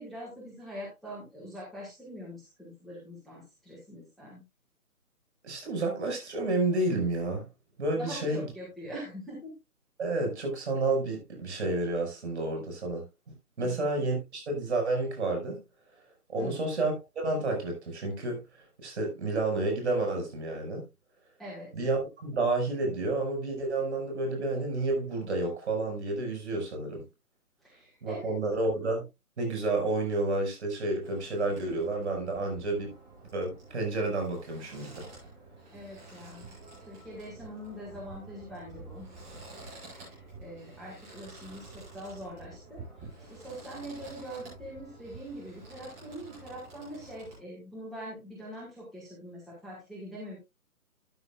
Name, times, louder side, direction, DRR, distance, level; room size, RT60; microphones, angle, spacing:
voice 1, 0.0-4.4 7.9-9.5 13.6-13.9 16.4-16.6 21.4-21.7 27.6-28.3 35.7-36.5 36.9-39.1 39.8-50.4, equal, ahead, 1.6 m, -43 dB
voice 2, 5.4-7.5 7.8-8.5 10.0-13.0 13.6-15.6 16.3-18.4 18.8-20.8 21.7-27.1 28.0-29.0 29.4-32.9 33.3-35.0, right 2 dB, 45° right, 5.7 m, -30 dB
sound 1, 31.0-47.4, right 3 dB, 15° right, 6.5 m, -49 dB
13.5 x 9.3 x 2.4 m
figure-of-eight pair, 150°, 45 cm